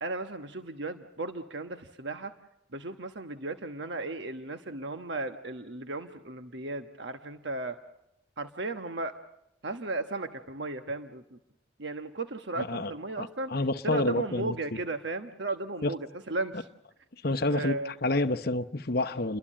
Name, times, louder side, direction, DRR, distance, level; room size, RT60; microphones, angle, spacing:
voice 1, 0.0-2.3 2.7-7.8 8.4-9.2 9.6-11.4 11.8-13.5 13.8-16.7 17.5-17.9, right 2 dB, 60° right, 1.2 m, -35 dB
voice 2, 12.6-12.9 13.2-14.6 15.8-15.9 17.2-19.4, left 2 dB, 50° left, 1.0 m, -28 dB
29.5 x 22.5 x 7.6 m
head